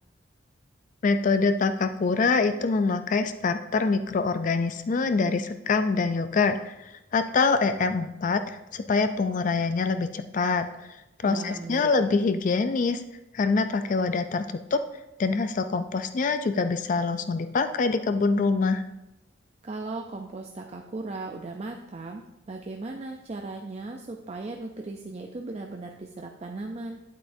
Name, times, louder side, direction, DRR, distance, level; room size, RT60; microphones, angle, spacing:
voice 1, 1.0-10.7 11.2-13.0 13.3-14.8 15.2-18.8, left 4 dB, 40° left, 9 dB, 0.4 m, -25 dB
voice 2, 11.2-11.9 19.6-27.0, right 3 dB, 35° right, 2 dB, 0.5 m, -37 dB
9.1 x 8.2 x 2.6 m, 0.92 s
head